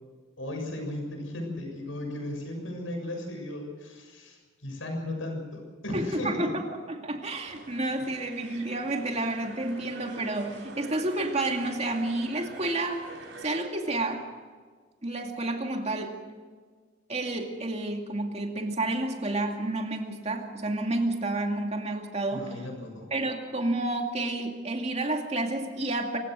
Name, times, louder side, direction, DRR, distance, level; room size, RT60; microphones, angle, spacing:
voice 1, 0.4-6.5 22.3-23.1, left 1 dB, 90° left, 3 dB, 6.8 m, -36 dB
voice 2, 5.9-6.6 6.9-13.0 13.4-14.2 15.0-16.1 17.1-22.6 23.1-26.2, right 2 dB, 35° right, 3 dB, 2.4 m, -30 dB
sound 1, 7.4-13.6, right 3 dB, 75° right, 6.3 m, -46 dB
25.5 x 16.0 x 6.4 m, 1.5 s
head